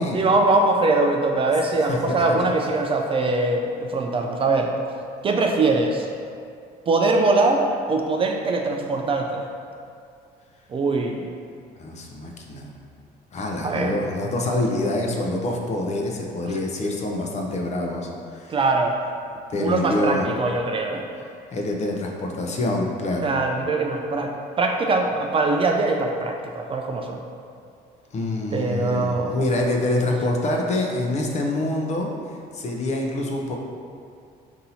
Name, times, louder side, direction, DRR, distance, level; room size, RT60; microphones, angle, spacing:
voice 1, 0.1-4.7 5.2-6.1 6.9-9.5 10.7-11.3 13.6-13.9 16.5-16.6 18.5-19.0 19.6-21.1 23.2-24.3 24.6-27.2 28.5-29.5, right 3 dB, 30° right, 2 dB, 0.4 m, -22 dB
voice 2, 11.8-12.7 13.3-18.6 19.5-20.3 21.5-23.3 28.1-32.1 32.5-33.6, left 1 dB, 40° left, 1 dB, 0.6 m, -26 dB
4.0 x 2.7 x 4.1 m, 2.3 s
cardioid pair, 110°, 17 cm